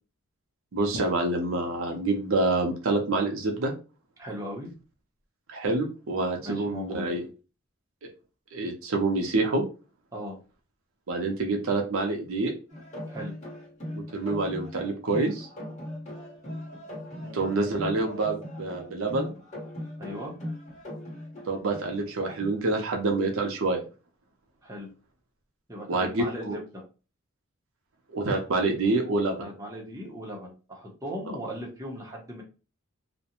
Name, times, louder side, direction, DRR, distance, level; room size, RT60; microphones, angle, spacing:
voice 1, 0.7-3.7 5.5-7.2 8.0-8.1 8.5-9.6 11.1-12.5 13.9-15.5 17.3-19.3 21.5-23.8 25.9-26.6 28.1-29.5, right 2 dB, 70° right, 3 dB, 0.6 m, -27 dB
voice 2, 4.2-4.7 6.4-7.0 10.1-10.4 13.1-13.3 17.2-17.4 20.0-20.3 24.6-24.9 25.7-26.8 29.4-32.4, equal, 15° right, -2 dB, 0.7 m, -38 dB
sound 1, 12.7-22.7, left 1 dB, 35° left, 1.1 m, -39 dB
2.4 x 2.1 x 2.8 m, 0.33 s
head